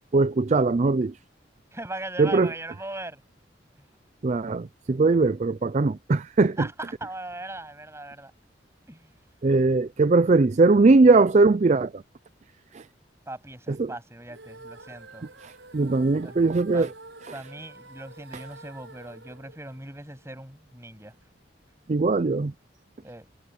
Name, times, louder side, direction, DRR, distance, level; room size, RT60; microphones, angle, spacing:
voice 1, 0.1-1.1 2.2-2.5 4.2-6.6 9.4-12.0 12.7-12.8 13.8-13.9 15.4-16.9 21.9-22.5, right 3 dB, 40° right, 0.4 m, -20 dB
voice 2, 1.7-3.2 6.6-8.3 8.9-9.1 13.3-15.3 16.2-16.9 17.3-21.2 23.0-23.3, right 2 dB, 15° right, 7.9 m, -39 dB
sound 1, 14.3-20.4, right 2 dB, 90° right, 7.6 m, -48 dB
head